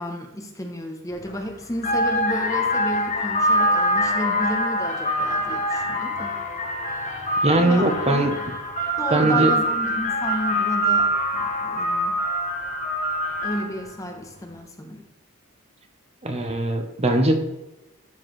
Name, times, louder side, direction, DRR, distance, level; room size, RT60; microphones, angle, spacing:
voice 1, 0.0-6.4 7.5-8.3 9.0-12.2 13.4-15.1, left 1 dB, 15° left, 3 dB, 0.8 m, -32 dB
sound 1, 1.1-1.3 1.8-13.9, equal, 35° left, 1.0 m, -24 dB
voice 2, 7.4-8.3 9.1-9.5 16.2-17.3, right 1 dB, 30° right, 4 dB, 0.8 m, -20 dB
12.0 x 4.6 x 3.2 m, 0.92 s
head